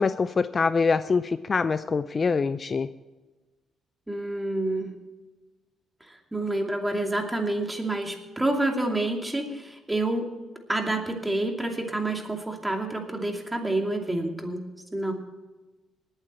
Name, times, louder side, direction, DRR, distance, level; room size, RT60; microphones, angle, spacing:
voice 1, 0.0-2.9, left 4 dB, 35° left, 12 dB, 0.5 m, -24 dB
voice 2, 4.1-4.9 6.0-10.3 10.7-14.6 14.9-15.1, right 2 dB, 10° right, 3 dB, 2.5 m, -28 dB
20.0 x 8.8 x 4.4 m, 1.2 s
cardioid pair, 90°, 0 cm